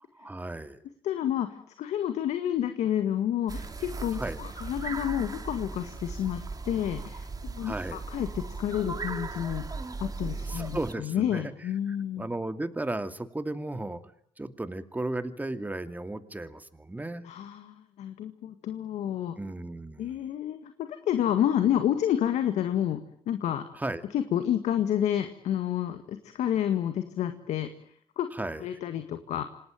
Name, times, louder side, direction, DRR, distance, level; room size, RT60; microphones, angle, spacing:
voice 1, 0.2-0.8 4.1-4.4 7.6-8.0 10.3-11.5 11.9-14.0 14.4-17.3 19.4-20.1 23.7-24.0 28.3-28.7, right 2 dB, 15° right, 10 dB, 2.5 m, -35 dB
voice 2, 1.0-1.5 1.8-9.7 10.0-12.3 17.2-19.3 20.0-23.6 24.1-27.7 28.2-28.3 28.6-29.4, left 10 dB, 85° left, 8 dB, 1.9 m, -29 dB
sound 1, 3.5-10.9, right 3 dB, 35° right, 2.6 m, -37 dB
27.0 x 19.0 x 9.4 m, 0.67 s
cardioid pair, 75°, 11 cm